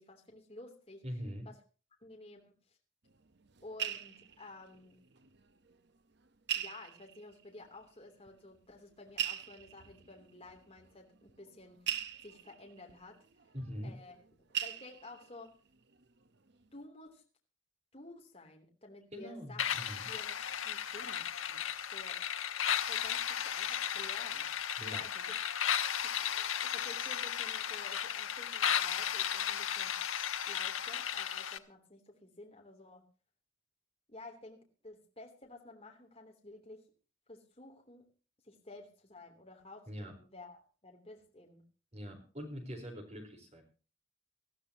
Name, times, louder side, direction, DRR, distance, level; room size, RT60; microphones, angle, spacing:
voice 1, 0.0-1.0 1.4-1.6 2.0-2.5 3.6-5.0 6.5-11.8 12.2-13.2 13.8-14.1 14.6-15.5 16.7-17.2 17.9-19.7 20.1-20.4 20.6-22.2 22.9-24.5 24.8-25.4 26.0-30.0 30.5-33.0 34.1-36.8 37.3-38.1 38.4-41.6, left 2 dB, 30° left, 1 dB, 3.2 m, -52 dB
voice 2, 1.0-1.5 13.5-14.0 19.1-20.1 24.8-25.0 39.9-40.1 41.9-43.6, equal, 35° right, 3 dB, 4.5 m, -43 dB
sound 1, 3.1-5.4 5.7-5.8 6.5-7.4 8.3-8.4 9.1-14.3 14.5-15.5 15.9-16.2 16.5-16.6, right 10 dB, 55° right, 0.9 m, -41 dB
sound 2, 19.6-31.6, left 9 dB, 85° left, 1.1 m, -35 dB
20.5 x 14.0 x 3.0 m, 0.36 s
head